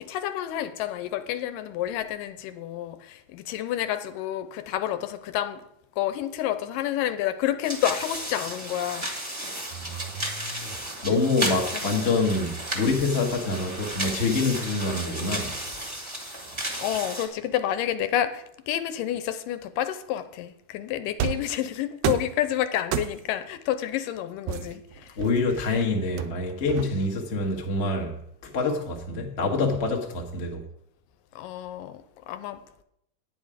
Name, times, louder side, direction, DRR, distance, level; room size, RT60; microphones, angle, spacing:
voice 1, 0.0-5.6 6.0-9.3 9.7-9.9 11.7-12.0 12.4-12.5 16.8-25.2 31.4-32.8, left 11 dB, 85° left, 2.3 m, -29 dB
sound 1, 7.6-17.3, right 1 dB, 45° right, 0.3 m, -33 dB
voice 2, 9.7-10.8 11.0-15.6 25.2-30.6, left 3 dB, 60° left, 0.7 m, -26 dB
sound 2, 21.2-21.5 22.0-22.4 22.9-23.4 24.5-25.6 26.2-27.2, right 9 dB, 90° right, 1.6 m, -30 dB
9.9 x 9.5 x 5.0 m
omnidirectional pair, 3.9 m